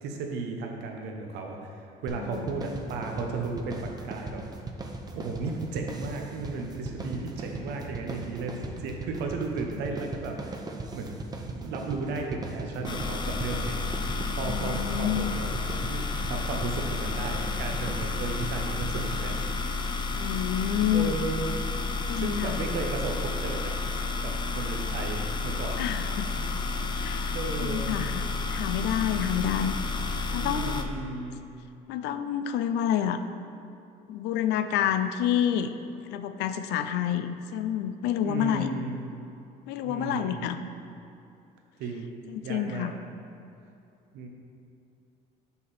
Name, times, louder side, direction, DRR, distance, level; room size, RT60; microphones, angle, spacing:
voice 1, 0.0-4.4 5.1-10.6 10.9-11.2 11.5-15.5 15.8-19.4 20.9-21.6 22.1-23.7 24.2-25.9 27.3-27.9 30.4-31.4 38.2-39.1 39.8-40.5 41.8-42.1 42.4-43.0 44.1-44.3, right 3 dB, 85° right, 2 dB, 0.9 m, -35 dB
sound 1, 2.1-19.5, right 2 dB, 25° right, 0.6 m, -39 dB
sound 2, 12.8-30.8, left 3 dB, 25° left, 0.5 m, -31 dB
voice 2, 14.4-15.3 20.2-21.2 22.1-22.6 25.8-26.3 27.0-27.4 27.6-29.7 30.3-30.9 31.9-33.2 34.1-35.7 36.1-38.7 39.7-40.6 42.3-42.9, left 10 dB, 85° left, 10 dB, 0.4 m, -28 dB
6.0 x 5.6 x 4.1 m, 2.7 s
cardioid pair, 110°, 17 cm